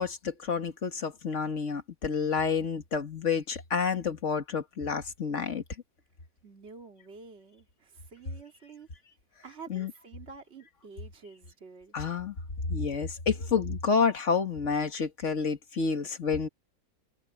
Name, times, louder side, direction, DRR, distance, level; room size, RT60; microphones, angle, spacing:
voice 1, 0.0-5.6 9.7-9.9 11.9-12.4 12.7-16.5, left 5 dB, 40° left, 2.1 m, -29 dB
voice 2, 6.4-8.9 9.4-11.9, right 5 dB, 35° right, 2.9 m, -49 dB
omnidirectional pair, 2.0 m